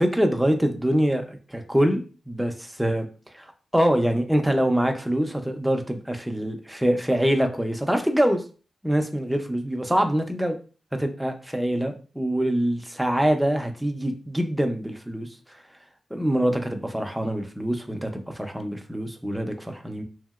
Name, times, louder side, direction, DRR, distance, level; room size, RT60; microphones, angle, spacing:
voice 1, 0.0-3.1 3.4-3.5 3.7-8.4 8.8-10.6 10.9-15.3 16.1-20.0, equal, 5° right, 4 dB, 0.5 m, -24 dB
2.8 x 2.6 x 2.4 m, 0.37 s
wide cardioid pair, 85°, 0 cm